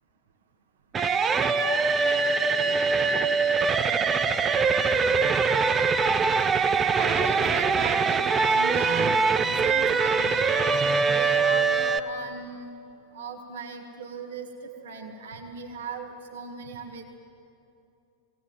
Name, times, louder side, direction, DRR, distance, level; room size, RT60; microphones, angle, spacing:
sound 1, 0.9-12.0, right 4 dB, 20° right, 0.8 m, -23 dB
voice 1, 7.0-12.7 13.1-14.5 14.8-17.0, right 5 dB, 60° right, 4 dB, 1.8 m, -38 dB
21.5 x 18.0 x 9.1 m, 2.6 s
figure-of-eight pair, 90°, 0 cm